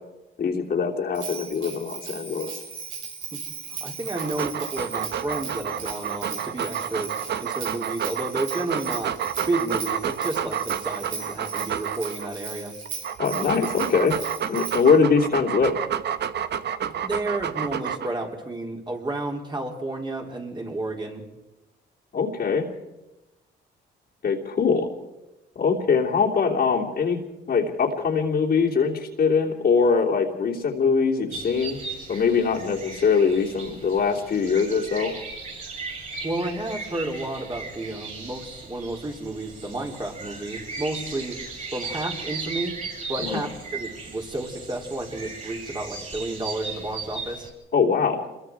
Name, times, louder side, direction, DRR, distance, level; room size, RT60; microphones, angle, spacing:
voice 1, 0.4-2.6 13.2-14.2 14.5-15.8 22.1-22.7 24.2-24.9 25.5-27.2 27.5-31.8 32.1-35.1 43.2-43.4 47.7-48.3, left 5 dB, 50° left, -3 dB, 3.1 m, -22 dB
Bell, 1.1-15.0, right 6 dB, 75° right, 4.0 m, -38 dB
voice 2, 3.8-7.1 7.4-9.1 9.5-12.8 17.0-21.2 36.2-41.4 41.7-42.8 43.1-47.5, right 2 dB, 20° right, 1 dB, 3.8 m, -31 dB
Dog, 4.1-12.3 12.9-18.3, right 8 dB, 60° right, 1.0 m, -30 dB
sound 1, 31.3-47.5, right 4 dB, 40° right, 7.9 m, -37 dB
26.5 x 22.0 x 4.8 m, 1.0 s
cardioid pair, 90°, 20 cm